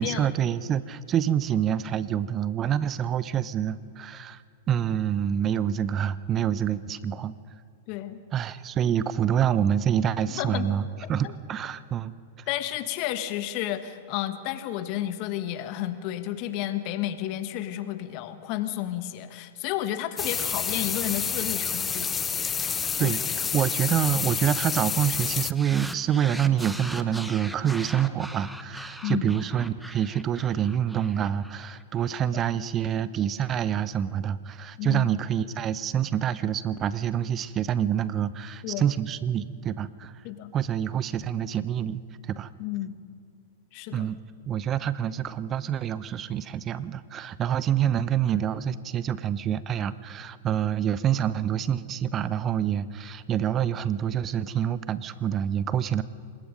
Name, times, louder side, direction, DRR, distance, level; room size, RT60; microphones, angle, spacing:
voice 1, 0.0-4.4 4.7-7.3 8.3-12.1 23.0-40.1 40.5-42.0 42.3-42.5 43.9-44.2 44.5-56.0, right 9 dB, 30° right, 16 dB, 0.8 m, -27 dB
voice 2, 7.9-8.2 10.3-10.7 11.2-11.3 12.5-22.6 22.9-23.2 29.0-29.4 32.3-32.4 34.8-35.1 38.6-38.9 40.2-40.5 42.6-43.0 43.7-44.1, left 13 dB, 45° left, 10 dB, 1.5 m, -32 dB
sound 1, 20.2-25.5, left 7 dB, 20° left, 0.5 m, -29 dB
sound 2, 25.5-32.1, equal, ahead, 1.1 m, -40 dB
26.0 x 20.5 x 5.3 m, 2.3 s
figure-of-eight pair, 100°, 0 cm